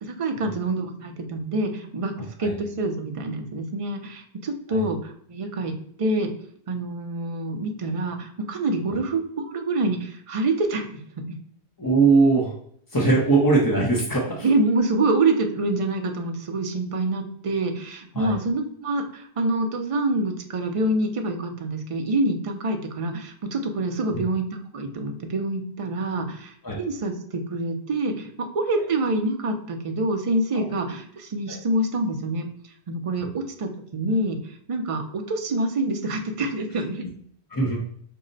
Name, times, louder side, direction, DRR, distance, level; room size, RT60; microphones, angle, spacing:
voice 1, 0.0-2.1 2.4-6.3 6.7-11.0 11.3-11.4 14.4-24.5 24.7-32.5 32.9-34.4 34.7-37.1, right 2 dB, 40° right, 4 dB, 0.5 m, -26 dB
voice 2, 11.8-12.5 12.9-14.5 18.1-18.4 24.1-24.2 26.6-26.8 30.5-30.6 31.5-31.6 37.5-37.8, right 3 dB, 25° left, -4 dB, 0.7 m, -20 dB
5.5 x 2.1 x 3.8 m, 0.62 s
omnidirectional pair, 1.1 m